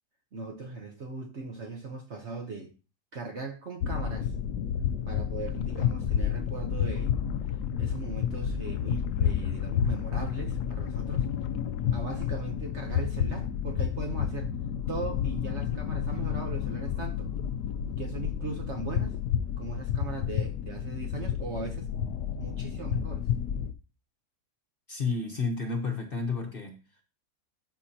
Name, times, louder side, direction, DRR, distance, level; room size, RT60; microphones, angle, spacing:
voice 1, 0.3-2.7 3.1-4.3 5.1-7.1 7.8-11.3 11.9-14.5 14.9-17.3 18.0-19.2 19.6-21.9 22.4-23.3, right 3 dB, 50° right, 1.1 m, -39 dB
sound 1, 3.8-23.7, left 9 dB, 75° left, 1.1 m, -30 dB
voice 2, 24.9-27.0, left 4 dB, 40° left, 1.1 m, -31 dB
13.0 x 5.0 x 2.9 m
omnidirectional pair, 1.7 m